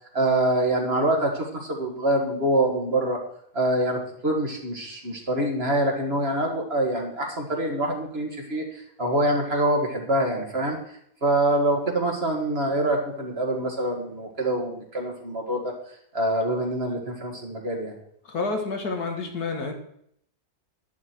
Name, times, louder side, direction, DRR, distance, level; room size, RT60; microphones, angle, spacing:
voice 1, 0.1-3.2 3.5-10.8 11.2-15.7 16.1-17.9, right 1 dB, 40° right, 2 dB, 2.3 m, -25 dB
voice 2, 18.3-19.7, left 3 dB, 85° left, 4 dB, 2.4 m, -29 dB
11.0 x 11.0 x 4.6 m, 0.69 s
omnidirectional pair, 1.6 m